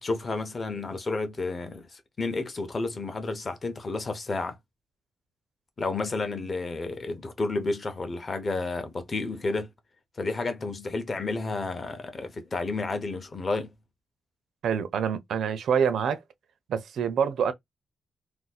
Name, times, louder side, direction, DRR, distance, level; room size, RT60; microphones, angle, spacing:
voice 1, 0.0-4.6 5.8-9.7 10.2-13.7, left 3 dB, 30° left, 0.6 m, -31 dB
voice 2, 14.6-16.2 16.7-17.5, right 7 dB, 85° right, 0.5 m, -26 dB
2.6 x 2.3 x 4.0 m
wide cardioid pair, 165°, 0 cm